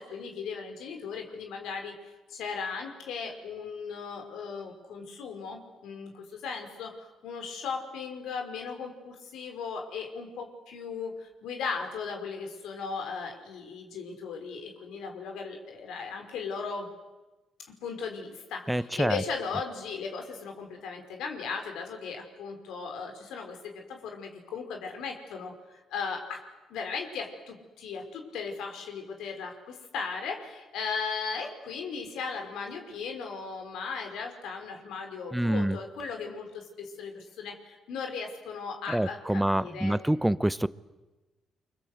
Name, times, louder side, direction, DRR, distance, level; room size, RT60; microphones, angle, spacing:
voice 1, 0.0-1.9 2.3-16.9 17.7-25.5 25.9-26.4 26.7-40.2, left 5 dB, 85° left, 4 dB, 5.3 m, -37 dB
voice 2, 18.7-19.2 35.3-35.8 38.9-40.7, right 1 dB, 5° right, 16 dB, 0.9 m, -26 dB
29.5 x 24.5 x 8.1 m, 1.1 s
cardioid pair, 90°, 0 cm